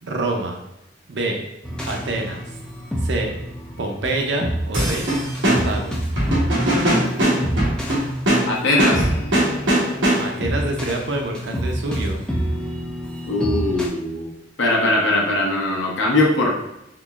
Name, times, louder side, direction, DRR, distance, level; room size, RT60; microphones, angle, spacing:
voice 1, 0.0-0.6 1.1-1.5 1.9-2.4 3.0-3.4 3.8-5.1 5.4-6.0 10.2-12.2, right 2 dB, 65° right, 2 dB, 0.6 m, -26 dB
sound 1, 1.6-13.9, equal, 5° left, 0.4 m, -28 dB
sound 2, 4.7-10.5, right 1 dB, 90° right, 1.0 m, -21 dB
voice 2, 8.5-9.1 13.3-14.3 14.6-16.5, left 2 dB, 75° left, -2 dB, 0.8 m, -20 dB
3.9 x 3.0 x 2.4 m, 0.85 s
head